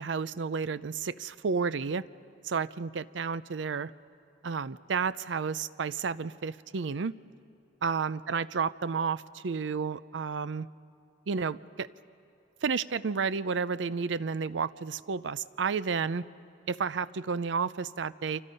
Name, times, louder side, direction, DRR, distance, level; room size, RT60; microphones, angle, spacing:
voice 1, 0.0-2.1 2.4-3.9 4.4-7.1 7.8-10.7 11.3-11.9 12.6-16.3 16.7-18.4, right 5 dB, 80° right, 16 dB, 0.5 m, -31 dB
30.0 x 26.0 x 5.5 m, 2.8 s
head